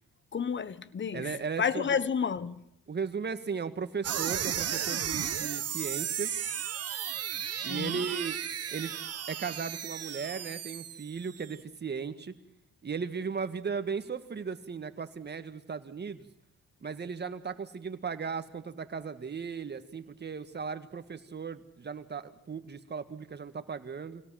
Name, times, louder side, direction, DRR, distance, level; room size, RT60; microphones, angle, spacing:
voice 1, 0.3-1.3 1.6-2.6 7.6-8.0, left 6 dB, 40° left, 1.3 m, -31 dB
voice 2, 1.1-2.0 2.9-6.3 7.6-8.4 8.7-9.0 9.3-12.3 12.8-16.3 16.8-24.2, right 5 dB, 35° right, 1.9 m, -36 dB
sound 1, 4.0-11.5, right 9 dB, 55° right, 1.4 m, -34 dB
25.0 x 17.5 x 7.7 m
cardioid pair, 90°, 30 cm